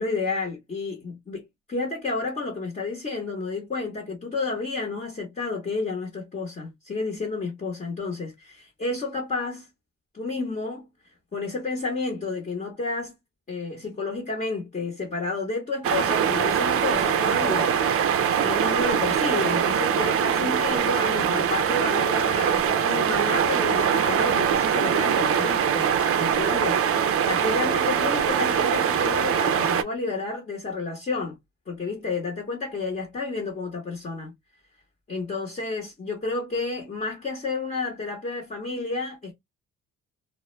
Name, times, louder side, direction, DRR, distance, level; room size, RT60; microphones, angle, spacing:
voice 1, 0.0-9.7 10.1-10.8 11.3-13.1 13.5-31.4 31.7-34.3 35.1-39.3, left 3 dB, 30° left, 0.9 m, -31 dB
sound 1, 15.8-29.8, right 8 dB, 50° right, 0.4 m, -23 dB
2.1 x 2.0 x 3.0 m
cardioid pair, 90°, 30 cm